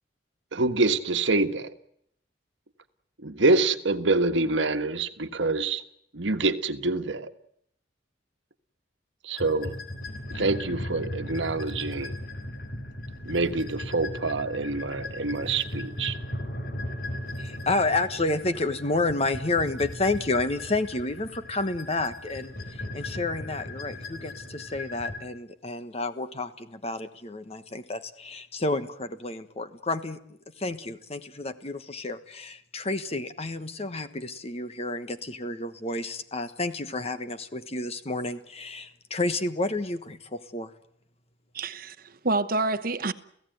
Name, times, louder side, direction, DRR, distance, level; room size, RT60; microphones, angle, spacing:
voice 1, 0.5-1.7 3.2-5.8 6.1-7.3 9.2-9.7 10.3-12.1 13.2-16.2, right 3 dB, 85° right, 1.5 m, -26 dB
sound 1, 9.4-25.2, left 1 dB, 55° left, 4.1 m, -37 dB
voice 2, 17.4-30.2 30.6-40.7, left 2 dB, 35° left, 1.3 m, -30 dB
voice 3, 41.5-43.1, right 3 dB, 50° right, 1.1 m, -28 dB
29.0 x 16.5 x 9.3 m
head